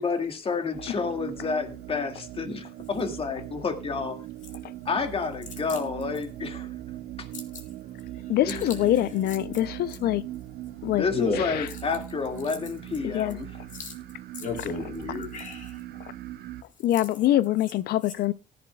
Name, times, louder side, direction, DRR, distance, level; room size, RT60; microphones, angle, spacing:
voice 1, 0.0-4.2 4.9-6.7 7.2-7.3 8.5-8.7 10.9-13.5, left 4 dB, 35° left, 2.1 m, -30 dB
sound 1, 0.7-16.6, right 14 dB, 70° right, 0.9 m, -40 dB
voice 2, 8.3-10.2 10.8-11.1 11.3-11.7 13.0-13.4 16.8-18.3, left 13 dB, 70° left, 0.5 m, -24 dB
voice 3, 11.1-11.6 13.7-13.9 14.4-15.8, left 5 dB, 50° left, 4.4 m, -31 dB
18.0 x 11.0 x 2.3 m
cardioid pair, 110°, 17 cm